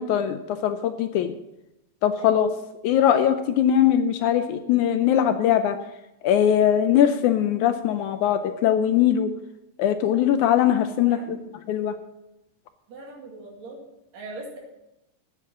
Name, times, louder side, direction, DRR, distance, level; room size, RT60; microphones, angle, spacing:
voice 1, 0.0-1.3 2.0-2.5 2.8-5.8 6.2-9.3 9.8-11.4 11.7-11.9, left 10 dB, 75° left, 9 dB, 1.8 m, -21 dB
voice 2, 11.0-11.5 12.9-13.8 14.1-14.6, right 2 dB, 55° right, 0 dB, 3.4 m, -41 dB
9.1 x 8.9 x 7.1 m, 0.91 s
omnidirectional pair, 3.9 m